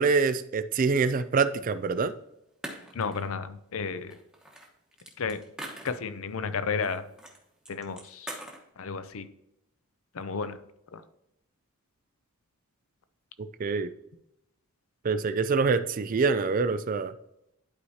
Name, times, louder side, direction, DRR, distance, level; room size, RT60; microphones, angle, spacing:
voice 1, 0.0-2.1 13.6-13.9 15.0-17.1, right 4 dB, 35° right, 13 dB, 0.3 m, -25 dB
sound 1, 2.0-2.1 2.6-3.4 4.1-6.3 6.8-7.4 7.7-8.6, right 1 dB, 5° right, 1.1 m, -42 dB
voice 2, 2.9-4.2 5.2-5.4 5.8-7.1 7.7-8.4 8.8-9.3 10.1-10.6 10.9-11.0, left 5 dB, 65° left, 11 dB, 0.5 m, -32 dB
11.5 x 4.7 x 2.8 m, 0.83 s
head